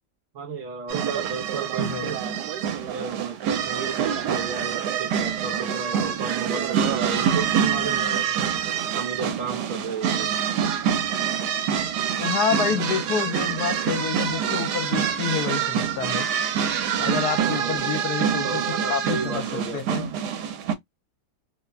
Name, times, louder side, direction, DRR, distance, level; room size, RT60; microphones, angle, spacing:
voice 1, 0.3-2.2 2.9-8.4 8.9-10.4 17.4-17.9 18.4-20.0, right 5 dB, 65° right, 0.9 m, -33 dB
sound 1, 0.9-20.7, right 8 dB, 80° right, 1.1 m, -26 dB
voice 2, 1.8-2.2 12.2-16.3 17.0-20.1, left 7 dB, 75° left, 1.2 m, -28 dB
2.8 x 2.1 x 2.3 m
omnidirectional pair, 1.8 m